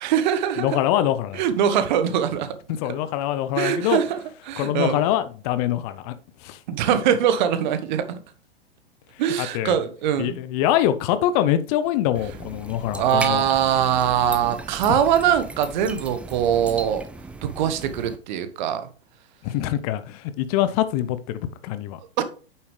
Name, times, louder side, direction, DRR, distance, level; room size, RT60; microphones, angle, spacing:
voice 1, 0.0-0.8 1.3-2.6 3.6-4.2 4.4-5.1 6.7-8.2 9.2-10.4 13.0-17.1 17.4-18.9 22.2-22.3, right 9 dB, 50° right, 1.3 m, -22 dB
voice 2, 0.6-1.4 2.8-4.0 4.6-6.2 6.4-6.6 9.4-9.8 10.2-13.4 14.9-15.0 19.4-22.0, left 12 dB, 40° left, 0.8 m, -24 dB
sound 1, 12.1-18.2, right 3 dB, 5° right, 0.4 m, -37 dB
8.9 x 7.1 x 3.2 m
figure-of-eight pair, 100°, 30 cm